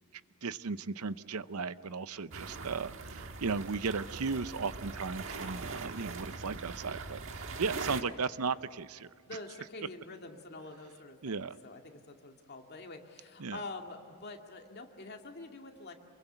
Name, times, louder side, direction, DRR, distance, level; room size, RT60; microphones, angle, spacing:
voice 1, 0.4-9.1 11.2-11.5 13.4-13.6, right 4 dB, 75° right, 14 dB, 0.7 m, -36 dB
sound 1, 2.3-8.0, right 4 dB, 60° right, 1.5 m, -42 dB
voice 2, 9.3-15.9, left 2 dB, 45° left, 3 dB, 2.2 m, -46 dB
27.5 x 22.5 x 8.1 m, 2.4 s
head